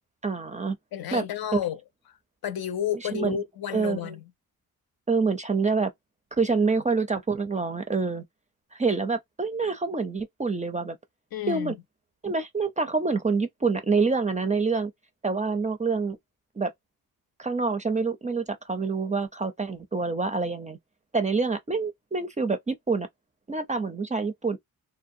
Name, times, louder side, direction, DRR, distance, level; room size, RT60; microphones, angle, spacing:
voice 1, 0.2-0.8 1.1-1.2 1.5-1.6 3.1-3.4 3.7-4.2 5.1-5.9 6.4-8.2 8.7-11.0 11.5-11.7 12.2-14.9 15.2-16.2 16.6-16.7 17.4-20.8 21.1-23.1 23.5-24.6, right 4 dB, 20° right, 0.4 m, -26 dB
voice 2, 0.9-1.8 2.4-4.2 11.3-11.8, left 10 dB, 75° left, 0.6 m, -31 dB
2.5 x 2.1 x 2.6 m
cardioid pair, 100°, 37 cm